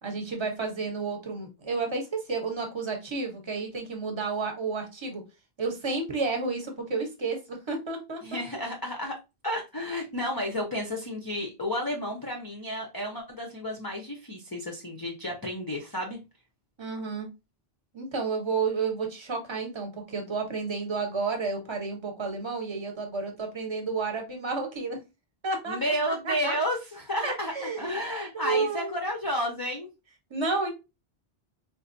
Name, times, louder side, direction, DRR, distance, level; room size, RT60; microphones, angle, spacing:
voice 1, 0.0-5.2 5.6-8.4 16.8-17.3 17.9-25.0 25.4-26.6 27.2-28.0 28.3-28.9 30.3-30.7, right 4 dB, 30° right, 3 dB, 0.9 m, -31 dB
voice 2, 8.2-9.2 9.4-16.2 25.7-29.9, equal, 25° left, 1 dB, 0.5 m, -31 dB
4.0 x 2.5 x 2.5 m, 0.26 s
omnidirectional pair, 1.1 m